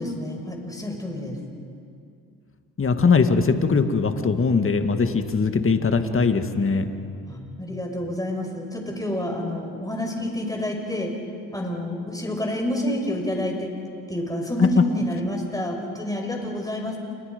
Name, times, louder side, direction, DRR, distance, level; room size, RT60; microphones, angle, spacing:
voice 1, 0.0-1.4 7.3-11.2 11.5-13.7 14.1-17.0, left 1 dB, 10° left, 2 dB, 5.3 m, -28 dB
voice 2, 2.8-6.9 14.6-14.7, left 4 dB, 35° left, 8 dB, 1.9 m, -21 dB
28.5 x 23.0 x 5.2 m, 2.4 s
supercardioid pair, 65°, 38 cm